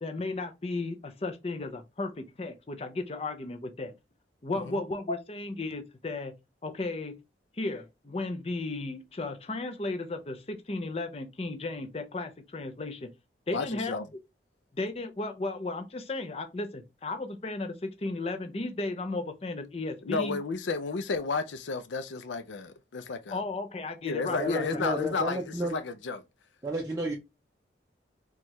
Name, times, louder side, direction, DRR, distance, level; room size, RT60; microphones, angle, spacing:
voice 1, 0.0-3.9 4.4-6.3 6.6-7.2 7.6-13.1 13.5-14.0 14.7-20.4 23.3-24.8, left 2 dB, 35° left, 0.5 m, -34 dB
voice 2, 13.5-14.1 20.0-23.4 24.0-26.2, left 4 dB, 90° left, 0.5 m, -32 dB
voice 3, 24.4-25.8 26.6-27.1, right 1 dB, 20° right, 0.5 m, -31 dB
4.3 x 2.3 x 3.0 m
head